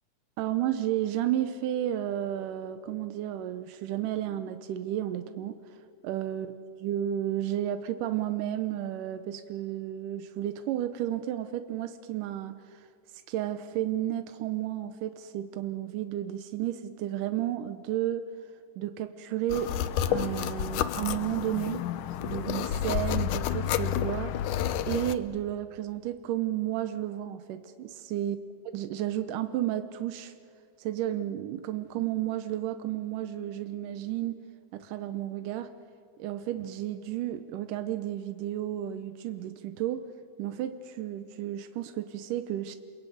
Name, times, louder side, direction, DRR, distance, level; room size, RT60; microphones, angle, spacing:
voice 1, 0.4-5.8 6.0-12.8 13.3-18.3 18.8-19.7 20.1-21.8 22.2-24.4 24.9-28.4 28.7-30.3 30.8-34.4 34.7-35.7 36.2-40.0 40.4-42.8, right 12 dB, 90° right, 9 dB, 2.4 m, -32 dB
sound 1, 19.5-25.2, left 10 dB, 80° left, 2.3 m, -30 dB
29.0 x 21.5 x 9.3 m, 2.2 s
omnidirectional pair, 3.6 m